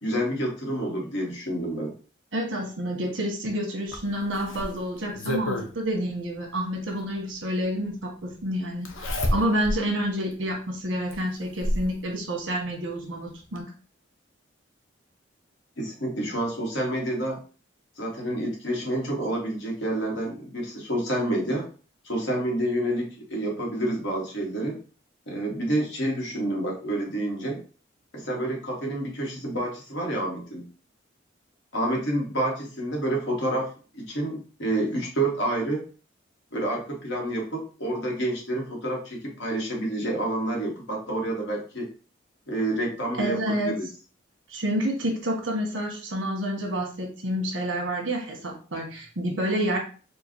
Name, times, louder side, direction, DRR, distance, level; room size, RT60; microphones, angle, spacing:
voice 1, 0.0-1.9 15.8-17.4 18.0-21.7 22.0-24.8 25.3-27.6 28.1-30.7 31.7-35.8 36.5-41.9 42.5-43.9, right 1 dB, 70° left, -1 dB, 1.3 m, -28 dB
voice 2, 2.3-13.7 43.2-43.7 44.5-49.8, equal, 75° right, 1 dB, 1.3 m, -29 dB
Zipper (clothing), 3.9-5.7 7.1-7.2 8.8-9.8 10.3-10.4 11.1-11.9 13.1-13.2 13.6-13.7, left 1 dB, 85° left, 0.7 m, -29 dB
4.5 x 2.4 x 3.1 m, 0.37 s
head